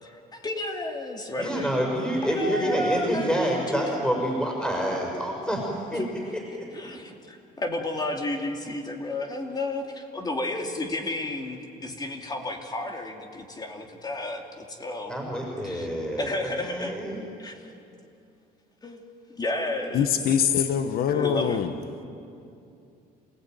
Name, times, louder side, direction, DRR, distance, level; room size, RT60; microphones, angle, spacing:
voice 1, 0.0-1.7 2.2-4.0 5.9-6.1 6.7-15.2 15.6-15.9 16.2-17.7 18.8-19.0 19.4-20.1 21.1-21.6, left 1 dB, 25° left, 3 dB, 2.8 m, -32 dB
voice 2, 1.4-6.0 6.6-6.9 15.1-16.3 16.6-17.2, equal, 5° left, -1 dB, 6.1 m, -27 dB
voice 3, 19.9-21.7, left 8 dB, 60° left, 9 dB, 1.4 m, -23 dB
28.0 x 17.0 x 9.3 m, 2.6 s
cardioid pair, 110°, 17 cm